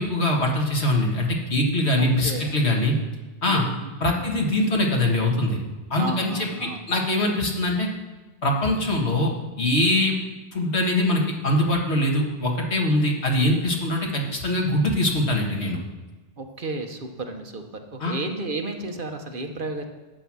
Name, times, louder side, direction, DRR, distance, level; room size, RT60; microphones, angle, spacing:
voice 1, 0.0-3.0 3.4-3.6 4.0-5.6 5.9-6.5 6.9-7.9 8.4-9.3 9.6-10.1 10.5-15.8 18.0-18.1, left 1 dB, 85° left, 0 dB, 2.2 m, -22 dB
voice 2, 2.0-2.5 3.5-3.9 6.0-6.8 16.4-19.8, right 2 dB, 55° right, 4 dB, 1.2 m, -33 dB
11.0 x 8.1 x 6.2 m, 1.2 s
omnidirectional pair, 1.1 m